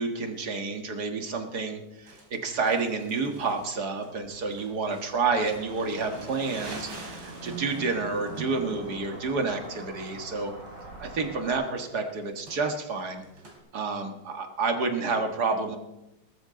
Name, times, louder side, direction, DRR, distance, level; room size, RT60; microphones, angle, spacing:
voice 1, 0.0-10.5 11.0-13.2 13.7-15.8, right 4 dB, 55° right, 5 dB, 2.1 m, -29 dB
Crumpling crinkling, 2.1-13.6, right 3 dB, 80° right, 3.5 m, -47 dB
sound 1, 5.1-11.5, right 2 dB, 35° right, 5.6 m, -43 dB
19.5 x 13.5 x 3.9 m, 0.91 s
omnidirectional pair, 2.2 m